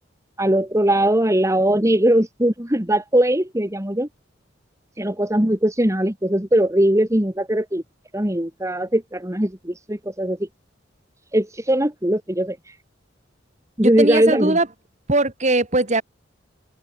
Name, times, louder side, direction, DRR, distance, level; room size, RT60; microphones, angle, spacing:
voice 1, 0.4-4.1 5.0-7.8 8.1-10.5 11.3-12.6 13.8-14.6, right 1 dB, 15° right, 2.4 m, -20 dB
voice 2, 14.0-14.7 15.1-16.0, right 2 dB, 40° right, 2.9 m, -20 dB
open air
head